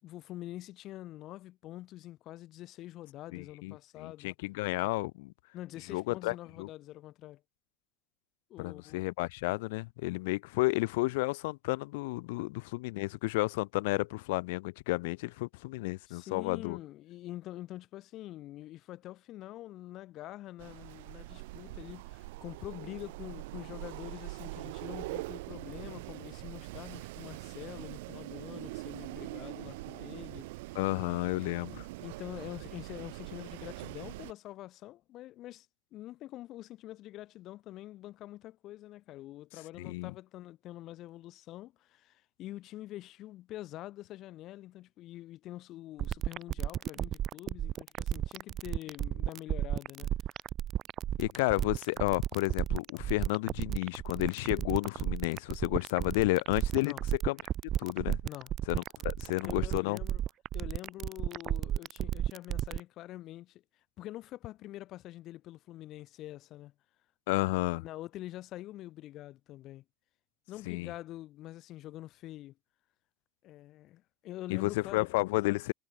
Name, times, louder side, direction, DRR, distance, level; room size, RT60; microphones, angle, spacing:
voice 1, 0.0-4.3 5.5-7.4 8.5-9.1 16.1-30.5 32.0-35.7 35.9-50.1 56.8-57.0 58.2-58.5 59.4-60.2 60.5-63.6 64.0-66.7 67.7-69.8 70.5-72.6 73.4-75.1, left 15 dB, 50° left, 6.8 m, -45 dB
voice 2, 3.3-5.3 5.9-6.7 8.6-16.8 30.7-31.9 39.8-40.1 51.2-56.9 57.2-57.4 57.8-58.2 58.7-60.0 67.3-67.8 70.7-70.9 74.5-75.7, left 22 dB, 80° left, 1.4 m, -32 dB
Wind, 20.6-34.3, right 21 dB, 85° right, 6.4 m, -43 dB
sound 1, 46.0-62.8, right 11 dB, 40° right, 3.3 m, -33 dB
supercardioid pair, 125°, 0 cm